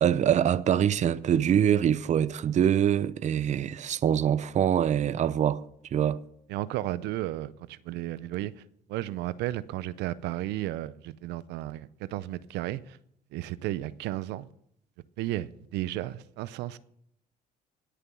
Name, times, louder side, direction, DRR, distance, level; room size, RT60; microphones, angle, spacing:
voice 1, 0.0-5.6 5.9-6.2, right 9 dB, 45° right, 0.6 m, -24 dB
voice 2, 6.5-8.6 8.9-13.0 13.3-14.5 15.2-16.8, right 15 dB, 85° right, 0.6 m, -33 dB
18.5 x 6.8 x 6.2 m
cardioid pair, 110°, 17 cm